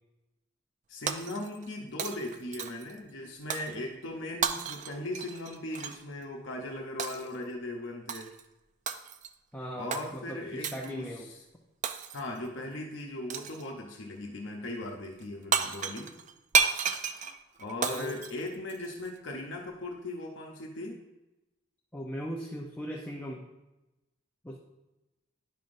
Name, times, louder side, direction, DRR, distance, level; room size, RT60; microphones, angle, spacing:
voice 1, 0.9-8.3 9.8-11.4 12.1-16.1 17.6-21.0, left 1 dB, 65° left, 0 dB, 0.8 m, -38 dB
Shatter, 1.1-1.7 2.0-2.9 3.5-3.8 4.4-6.0 7.0-7.3 8.1-8.4 8.9-9.3 9.9-10.1 10.6-10.9 11.8-12.4 13.3-13.7 15.2-15.3 15.5-19.1, right 6 dB, 40° right, 0.4 m, -32 dB
voice 2, 9.5-11.3 17.9-18.2 21.9-23.5 24.4-24.6, equal, 10° left, -1 dB, 0.5 m, -38 dB
10.5 x 5.7 x 2.6 m, 1.0 s
head